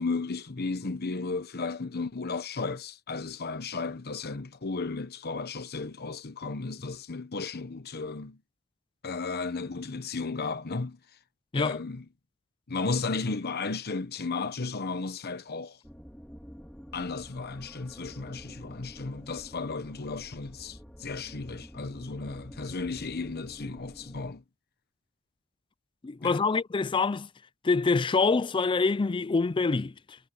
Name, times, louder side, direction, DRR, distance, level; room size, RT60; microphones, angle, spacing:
voice 1, 0.0-8.4 9.0-11.0 11.5-12.1 12.7-15.8 16.9-24.4 26.2-26.4, left 4 dB, 50° left, 1.0 m, -34 dB
sound 1, 15.8-24.3, equal, 5° left, 3.2 m, -48 dB
voice 2, 26.0-27.3 27.6-30.2, left 4 dB, 25° left, 0.4 m, -26 dB
head